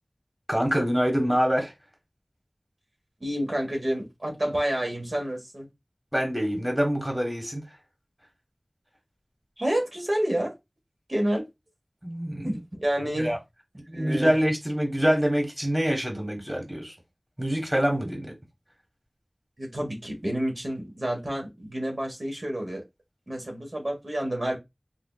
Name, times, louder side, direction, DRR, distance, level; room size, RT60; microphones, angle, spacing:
voice 1, 0.5-1.7 6.1-7.6 12.0-12.5 13.2-13.4 13.9-16.9 17.4-18.3, equal, 15° right, 1.5 m, -25 dB
voice 2, 3.2-5.7 9.6-10.5 11.1-11.4 12.4-13.3 13.9-14.3 19.6-22.8 23.3-24.6, right 1 dB, 65° right, 1.4 m, -29 dB
3.8 x 3.4 x 2.4 m
wide cardioid pair, 40°, 0 cm